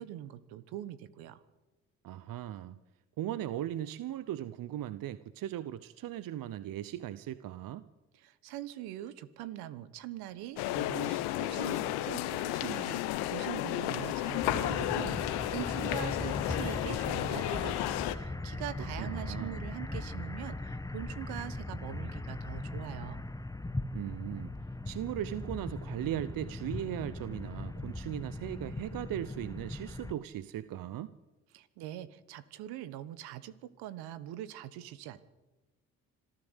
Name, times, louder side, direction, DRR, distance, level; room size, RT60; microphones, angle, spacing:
voice 1, 0.0-1.4 8.2-23.2 31.5-35.2, right 13 dB, 75° right, 15 dB, 1.3 m, -43 dB
voice 2, 2.0-2.8 3.2-7.9 19.0-19.6 23.9-24.6 24.9-31.1, right 12 dB, 60° right, 15 dB, 0.9 m, -38 dB
sound 1, 10.6-18.1, left 14 dB, 75° left, 1.2 m, -33 dB
sound 2, 14.4-30.1, left 2 dB, 10° left, 1.2 m, -39 dB
26.0 x 14.0 x 8.2 m, 1.2 s
hypercardioid pair, 50°, 38 cm